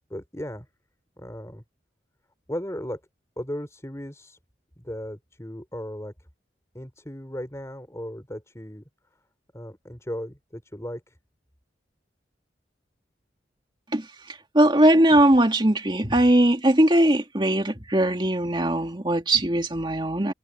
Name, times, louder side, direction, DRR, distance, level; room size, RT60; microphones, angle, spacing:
voice 1, 0.1-0.7 1.2-1.6 2.5-3.0 3.4-4.4 4.8-6.1 6.7-8.8 9.5-11.2, equal, 15° left, 4.2 m, -36 dB
voice 2, 13.9-20.3, right 1 dB, 25° right, 2.3 m, -20 dB
head